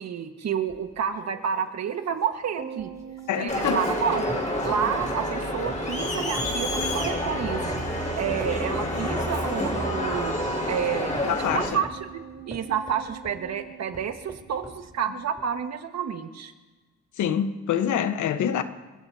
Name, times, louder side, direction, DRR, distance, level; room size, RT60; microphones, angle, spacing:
voice 1, 0.0-2.9 3.4-4.3 4.6-7.7 8.2-11.2 11.5-11.9 12.5-16.5, right 8 dB, 60° right, 1.6 m, -29 dB
sound 1, 0.7-4.0 4.3-5.3 5.7-8.0 8.4-9.3 9.8-10.6 11.2-13.4 13.9-14.8 15.4-15.5, right 1 dB, 10° right, 3.5 m, -42 dB
sound 2, 2.6-15.1 15.4-15.5, right 8 dB, 45° right, 4.0 m, -44 dB
voice 2, 3.3-3.9 11.2-11.8 17.2-18.6, left 9 dB, 75° left, 1.1 m, -26 dB
Crowd, 3.5-11.7, left 1 dB, 25° left, 4.9 m, -28 dB
29.5 x 15.0 x 2.8 m
cardioid pair, 90°, 30 cm